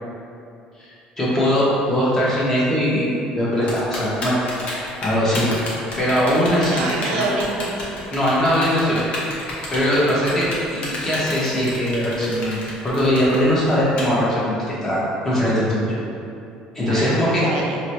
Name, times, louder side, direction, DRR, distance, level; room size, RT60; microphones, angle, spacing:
voice 1, 1.2-4.4 5.0-5.5 6.0-6.8 7.1-7.3 8.1-9.0 9.7-10.5 10.7-15.9 16.7-17.4, equal, 20° left, -8 dB, 1.1 m, -20 dB
Typing, 3.7-14.0, left 2 dB, 55° left, 0.9 m, -31 dB
voice 2, 6.5-7.9 8.4-9.1 10.0-10.1 16.8-17.8, right 3 dB, 90° right, 0 dB, 0.4 m, -28 dB
4.0 x 2.2 x 2.9 m, 2.6 s
supercardioid pair, 95°, 3 cm